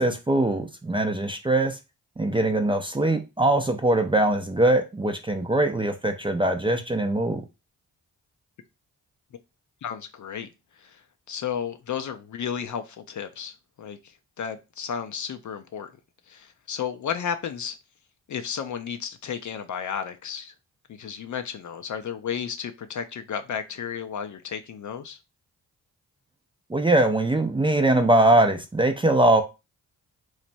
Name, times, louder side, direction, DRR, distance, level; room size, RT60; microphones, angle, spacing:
voice 1, 0.0-1.8 2.2-7.4 26.7-29.4, right 1 dB, 15° right, 0.4 m, -22 dB
voice 2, 9.8-10.5 10.8-11.0 11.3-14.0 14.4-15.9 16.3-17.8 18.3-20.5 20.9-25.2, left 7 dB, 45° left, 0.5 m, -33 dB
3.1 x 2.0 x 2.6 m
supercardioid pair, 40°, 42 cm